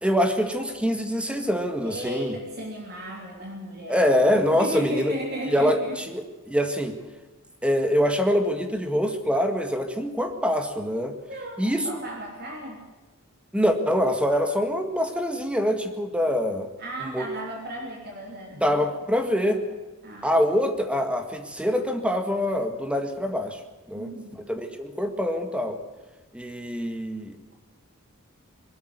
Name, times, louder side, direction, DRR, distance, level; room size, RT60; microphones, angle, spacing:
voice 1, 0.0-2.3 3.9-5.1 5.5-7.0 7.6-11.2 11.6-11.9 13.5-16.7 17.0-17.3 18.6-19.6 20.2-23.6 23.9-24.1 24.5-25.8 26.3-27.4, equal, 5° right, 7 dB, 1.9 m, -24 dB
voice 2, 1.8-6.0 11.2-12.8 16.8-18.8 19.2-19.6 20.0-20.4 23.9-24.4, right 1 dB, 50° right, 0 dB, 3.1 m, -35 dB
22.5 x 12.5 x 9.5 m, 1.2 s
head